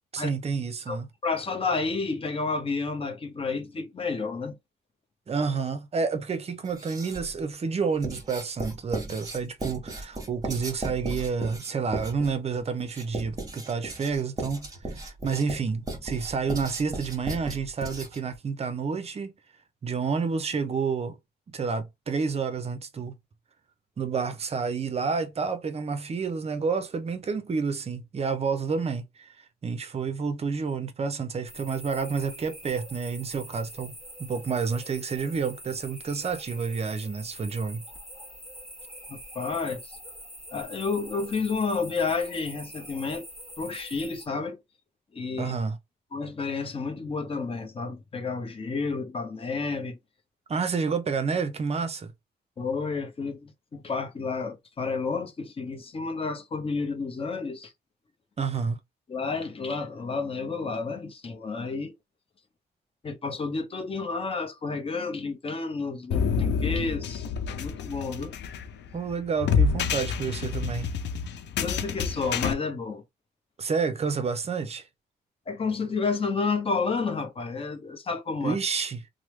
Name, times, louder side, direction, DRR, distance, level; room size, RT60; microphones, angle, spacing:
voice 1, 0.1-1.1 5.3-19.3 19.8-21.2 21.5-23.2 24.0-29.3 29.6-33.9 34.2-37.8 45.4-45.8 50.5-52.1 58.4-58.8 68.9-70.9 73.6-74.9 78.4-79.0, right 5 dB, 35° right, 0.5 m, -29 dB
voice 2, 1.2-4.6 39.1-40.0 40.5-43.2 43.6-44.6 45.1-45.5 46.1-50.0 52.6-57.7 59.1-61.9 63.0-68.3 71.6-73.0 75.5-78.6, left 4 dB, 30° left, 0.6 m, -31 dB
Writing, 6.6-7.4 8.0-18.3, right 2 dB, 20° right, 1.3 m, -36 dB
sound 1, 31.5-44.3, equal, ahead, 1.2 m, -44 dB
sound 2, 66.1-72.5, left 6 dB, 85° left, 0.4 m, -28 dB
3.1 x 2.0 x 3.1 m
cardioid pair, 110°, 18 cm